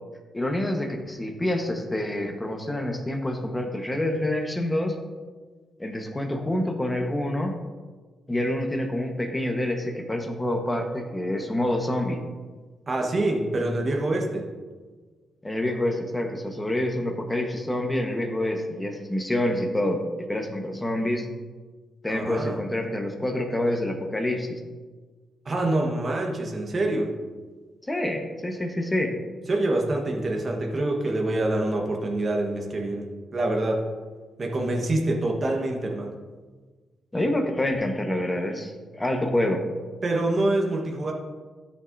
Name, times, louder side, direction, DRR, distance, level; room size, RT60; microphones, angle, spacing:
voice 1, 0.3-4.9 5.8-7.6 8.3-12.2 15.4-20.0 20.3-21.3 22.0-24.6 27.9-29.1 37.1-39.6, left 1 dB, 15° left, 3 dB, 1.2 m, -27 dB
voice 2, 12.9-14.5 22.0-22.6 25.4-27.2 29.5-33.8 34.4-36.2 40.0-41.1, right 2 dB, 40° right, 1 dB, 1.2 m, -26 dB
13.0 x 5.8 x 2.7 m, 1.4 s
cardioid pair, 100°, 0 cm